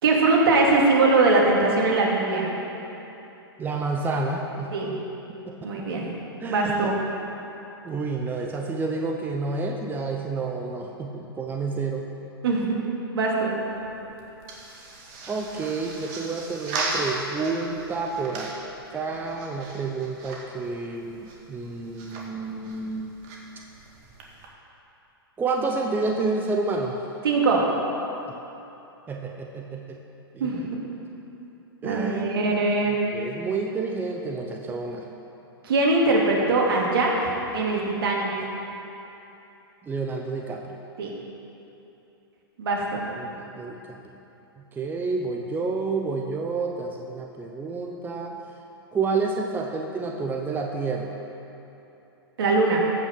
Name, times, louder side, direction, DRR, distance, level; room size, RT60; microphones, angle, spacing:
voice 1, 0.0-2.5 4.7-4.9 5.6-6.1 6.5-6.9 12.4-12.8 13.1-13.5 27.2-27.6 30.4-30.6 31.8-33.0 35.6-38.3 41.0-41.1 42.6-43.0 52.4-52.8, right 3 dB, 65° right, -2 dB, 2.5 m, -21 dB
voice 2, 3.6-4.7 5.5-5.7 6.4-6.9 7.8-12.1 15.3-18.5 18.9-23.1 25.4-27.1 29.1-30.0 30.3-30.5 31.8-32.6 33.1-35.1 39.8-40.8 43.2-44.0 44.7-48.4 48.9-51.2, right 3 dB, 15° right, 2 dB, 0.8 m, -29 dB
sound 1, 13.6-24.5, right 2 dB, 45° right, 2.0 m, -37 dB
15.0 x 5.9 x 6.0 m, 3.0 s
hypercardioid pair, 115°, 13 cm